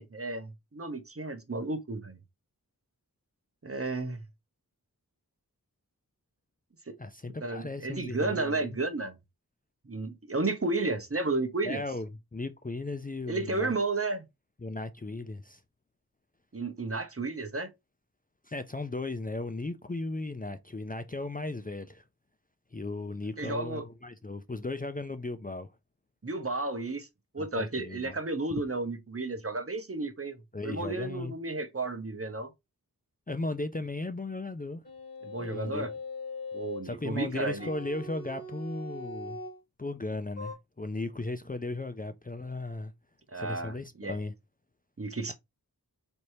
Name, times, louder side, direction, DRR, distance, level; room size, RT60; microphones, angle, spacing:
voice 1, 0.0-2.2 3.6-4.2 6.9-7.0 7.4-9.2 9.9-11.8 13.3-14.3 16.5-17.7 23.4-23.8 26.2-27.1 27.3-32.5 35.2-35.9 36.5-37.7 43.3-44.2 45.0-45.3, right 2 dB, 40° right, 0.9 m, -32 dB
voice 2, 7.0-8.8 11.6-13.7 14.6-15.6 18.4-22.0 22.7-25.7 27.4-28.2 30.5-31.3 33.3-34.8 35.4-35.9 36.8-39.4 39.8-42.9 43.3-44.3, left 2 dB, 25° left, 0.5 m, -36 dB
sound 1, 34.8-36.9 37.6-39.6 40.4-40.5, left 2 dB, 40° left, 3.1 m, -41 dB
4.4 x 3.2 x 2.7 m
wide cardioid pair, 50°, 36 cm